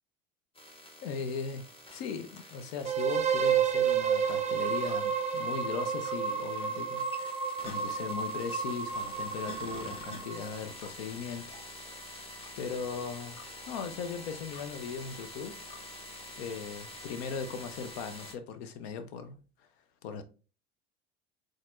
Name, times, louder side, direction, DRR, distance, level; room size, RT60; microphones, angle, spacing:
sound 1, 0.5-18.3, left 1 dB, 15° left, 0.8 m, -47 dB
voice 1, 1.0-11.5 12.6-13.4 13.7-15.6 16.4-19.4 20.0-20.2, left 6 dB, 75° left, 0.7 m, -38 dB
sound 2, 2.8-10.6, right 7 dB, 20° right, 0.4 m, -31 dB
sound 3, 4.9-5.0 6.0-6.2 7.6-7.8 8.9-9.1 9.7-9.9 10.8-11.0 11.5-11.7 12.4-12.5 13.4-13.5 14.5-14.7 15.7-15.9, left 4 dB, 45° left, 1.9 m, -52 dB
4.1 x 3.2 x 2.5 m
hypercardioid pair, 75°, 31 cm